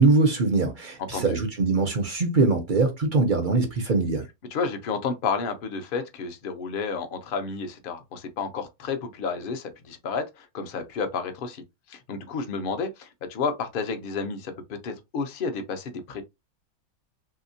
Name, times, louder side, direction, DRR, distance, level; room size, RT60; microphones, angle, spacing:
voice 1, 0.0-4.2, right 3 dB, 45° right, 0.6 m, -22 dB
voice 2, 4.5-11.6 11.9-16.2, left 5 dB, 50° left, 0.6 m, -31 dB
3.3 x 2.8 x 2.6 m
omnidirectional pair, 1.6 m